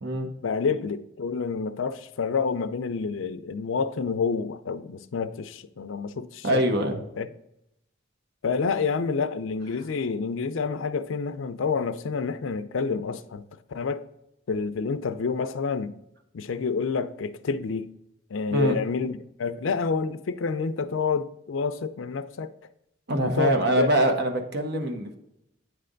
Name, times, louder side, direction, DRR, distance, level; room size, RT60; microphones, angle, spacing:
voice 1, 0.4-6.6 7.2-7.3 8.4-13.4 13.7-14.1 14.5-15.9 16.3-17.9 18.3-22.5 23.2-23.9, left 5 dB, 85° left, 0.5 m, -28 dB
voice 2, 6.4-7.0 18.5-18.7 23.1-25.2, right 1 dB, 60° right, 1.0 m, -24 dB
9.0 x 3.3 x 3.8 m
head